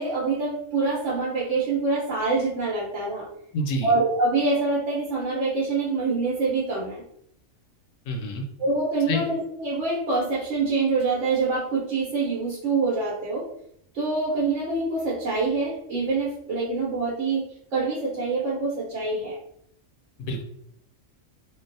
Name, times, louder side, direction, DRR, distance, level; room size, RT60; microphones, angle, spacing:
voice 1, 0.0-3.3 3.8-7.0 8.6-13.4 13.9-17.4 17.7-19.4, right 3 dB, 70° right, -5 dB, 1.1 m, -25 dB
voice 2, 3.5-3.9 8.1-8.4 9.1-9.2 20.2-20.4, left 1 dB, 80° left, 4 dB, 0.9 m, -27 dB
3.3 x 2.2 x 2.5 m, 0.72 s
omnidirectional pair, 1.3 m